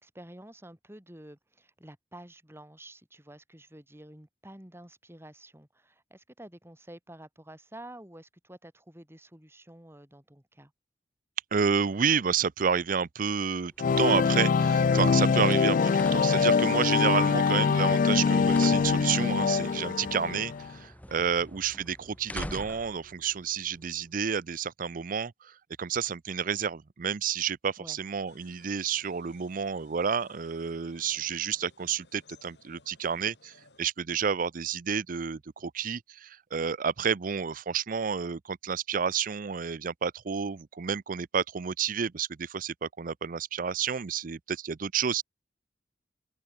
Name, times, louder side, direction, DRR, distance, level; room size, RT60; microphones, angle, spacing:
voice 1, 0.0-10.7 27.8-28.0, right 1 dB, 15° right, 5.5 m, -50 dB
voice 2, 11.5-45.2, right 6 dB, 50° right, 0.5 m, -30 dB
sound 1, 13.6-24.3, left 1 dB, 10° left, 4.6 m, -47 dB
sound 2, 13.8-20.7, left 5 dB, 50° left, 0.4 m, -24 dB
sound 3, 28.3-33.8, left 4 dB, 70° left, 6.5 m, -60 dB
open air
head